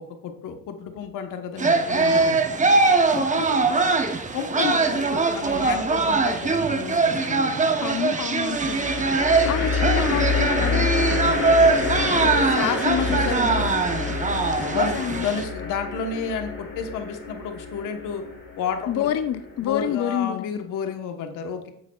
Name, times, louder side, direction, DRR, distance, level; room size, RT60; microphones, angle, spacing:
voice 1, 0.2-2.4 4.3-7.6 9.4-9.5 11.2-13.6 14.7-18.2 18.6-19.1 19.6-21.7, left 6 dB, 90° left, 5 dB, 1.2 m, -31 dB
sound 1, 1.6-15.4, right 3 dB, 25° right, 0.8 m, -22 dB
voice 2, 3.1-4.2 7.8-9.2 9.5-11.0 14.6-15.3 18.9-20.6, left 10 dB, 55° left, 10 dB, 0.5 m, -29 dB
sound 2, 5.4-6.1 8.5-19.9, left 4 dB, 40° left, 2.8 m, -28 dB
8.9 x 8.3 x 2.3 m, 0.68 s
cardioid pair, 90°, 30 cm